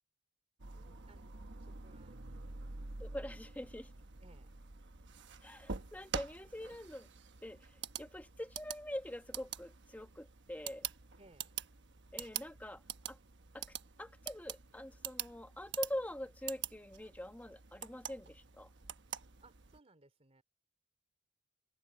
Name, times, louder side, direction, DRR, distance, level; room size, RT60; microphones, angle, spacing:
sound 1, 0.6-19.8, right 7 dB, 60° right, 1.1 m, -46 dB
voice 1, 0.7-3.0 4.2-4.6 11.2-11.5 19.4-20.4, right 2 dB, 30° right, 3.3 m, -64 dB
voice 2, 3.0-3.9 5.4-7.1 7.4-10.9 12.1-12.8 13.1-13.2 13.5-18.7, left 1 dB, 10° left, 1.2 m, -44 dB
open air
head